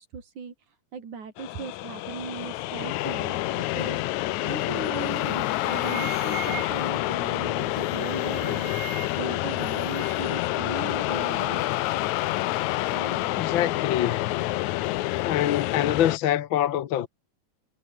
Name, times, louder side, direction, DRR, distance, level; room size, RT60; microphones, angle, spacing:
voice 1, 0.0-11.8 12.9-13.3, right 6 dB, 85° right, 5.4 m, -38 dB
sound 1, 1.4-16.2, left 17 dB, 85° left, 2.1 m, -28 dB
sound 2, 4.9-5.1 5.4-7.0 7.8-9.3 9.6-10.4, right 11 dB, 70° right, 2.6 m, -40 dB
voice 2, 13.3-14.3 15.2-17.1, left 11 dB, 60° left, 1.4 m, -25 dB
omnidirectional pair, 3.3 m